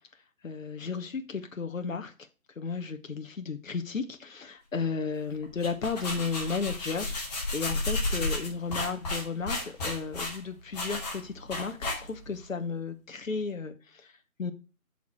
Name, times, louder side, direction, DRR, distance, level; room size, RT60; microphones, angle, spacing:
voice 1, 0.4-2.3 2.6-14.5, left 5 dB, 65° left, 8 dB, 1.1 m, -34 dB
sound 1, 5.4-12.4, left 2 dB, 30° left, 2.9 m, -33 dB
7.3 x 6.0 x 4.6 m, 0.32 s
figure-of-eight pair, 155°, 42 cm